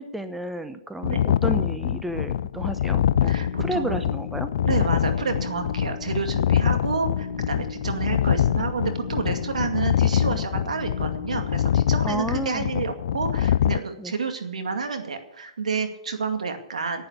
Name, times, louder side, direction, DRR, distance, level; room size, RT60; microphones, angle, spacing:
voice 1, 0.0-3.3 3.6-4.8 12.0-12.7 14.0-14.1, right 1 dB, 5° right, 9 dB, 0.7 m, -31 dB
sound 1, 1.0-13.8, left 10 dB, 60° left, 0.4 m, -24 dB
sound 2, 3.0-12.3, left 4 dB, 25° left, 3.2 m, -38 dB
voice 2, 3.2-4.0 4.6-17.1, right 5 dB, 90° right, 6 dB, 2.2 m, -29 dB
10.5 x 9.0 x 8.2 m, 0.77 s
hypercardioid pair, 145°, 4 cm